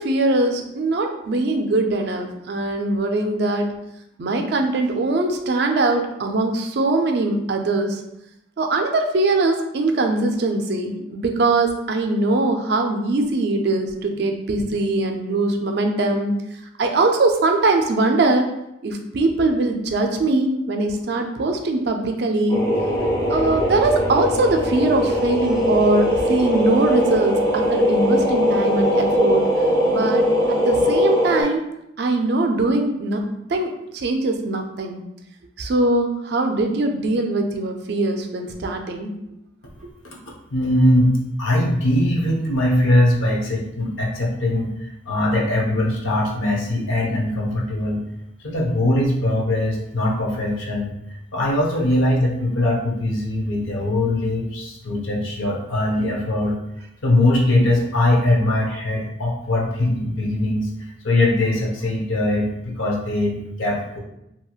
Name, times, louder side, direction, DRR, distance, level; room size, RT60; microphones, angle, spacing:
voice 1, 0.0-3.7 4.2-8.0 8.6-16.4 16.8-18.5 18.8-22.6 23.3-29.4 29.9-31.6 32.0-33.2 33.5-35.0 35.6-39.1, right 2 dB, 55° right, 4 dB, 0.4 m, -21 dB
sound 1, 22.5-31.4, equal, 20° left, 0.6 m, -20 dB
voice 2, 40.5-48.0 48.4-56.6 57.0-60.7 61.0-64.0, left 1 dB, 85° left, -2 dB, 0.7 m, -21 dB
2.9 x 2.7 x 2.3 m, 0.83 s
head